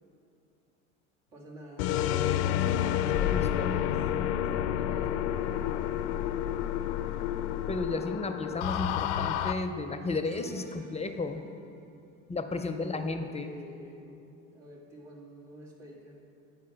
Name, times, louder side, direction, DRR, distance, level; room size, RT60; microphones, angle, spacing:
voice 1, 1.3-2.0 3.3-4.1 4.4-6.3 12.6-14.2 14.5-16.2, equal, 90° right, -3 dB, 1.7 m, -48 dB
sound 1, 1.8-9.5, left 11 dB, 70° left, 0.5 m, -29 dB
voice 2, 3.1-3.8 7.7-11.4 12.3-13.5, left 3 dB, 20° left, 7 dB, 0.4 m, -33 dB
sound 2, 10.2-11.8, right 1 dB, 55° right, 1.3 m, -50 dB
9.6 x 4.8 x 5.7 m, 2.6 s
hypercardioid pair, 75°, 37 cm